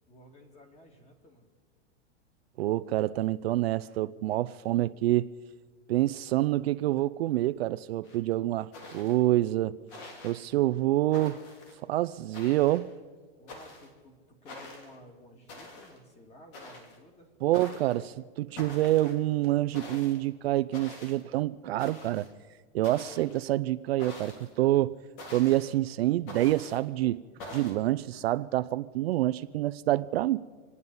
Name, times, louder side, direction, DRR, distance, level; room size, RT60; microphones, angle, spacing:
voice 1, 0.1-1.5 13.4-17.3, left 1 dB, 20° left, 2.2 m, -54 dB
voice 2, 2.6-5.3 5.9-9.8 10.2-11.4 11.8-12.9 17.4-22.3 22.7-25.0 25.3-27.2 27.5-30.4, right 15 dB, 60° right, 0.5 m, -27 dB
sound 1, 8.0-8.2 8.7-9.3 9.9-10.4 11.1-11.7 12.3-12.9 13.5-13.9 14.5-15.0 15.5-16.0 16.5-17.0 17.5-18.0 18.6-19.2 19.7-20.2 20.7-21.2 21.8-22.3 22.8-23.5 24.0-24.5 25.2-25.7 26.3-26.8 27.4-27.8, left 2 dB, 45° left, 3.1 m, -45 dB
27.5 x 9.5 x 5.5 m
supercardioid pair, 150°, 35 cm